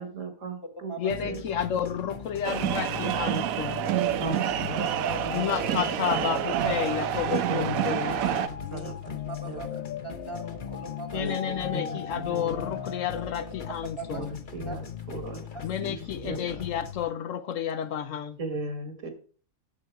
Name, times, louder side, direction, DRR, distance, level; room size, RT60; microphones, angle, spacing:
voice 1, 0.0-0.9 1.2-1.8 4.2-5.7 7.5-9.2 9.4-9.9 11.1-13.0 14.1-16.6 18.4-19.1, right 1 dB, 65° right, 2.1 m, -38 dB
voice 2, 1.0-3.8 5.3-8.1 11.1-14.3 15.6-18.4, left 9 dB, 70° left, 1.0 m, -31 dB
sound 1, 1.1-17.1, left 8 dB, 45° left, 0.9 m, -39 dB
sound 2, 2.4-8.5, right 11 dB, 85° right, 1.1 m, -28 dB
sound 3, 4.4-14.2, left 7 dB, 85° left, 1.1 m, -41 dB
voice 3, 4.8-5.4 8.6-8.9 9.3-9.7 10.0-11.2 13.1-13.2 13.8-14.2 14.7-14.8 15.5-15.6, right 2 dB, 20° left, 1.4 m, -40 dB
10.5 x 6.9 x 4.6 m
omnidirectional pair, 1.4 m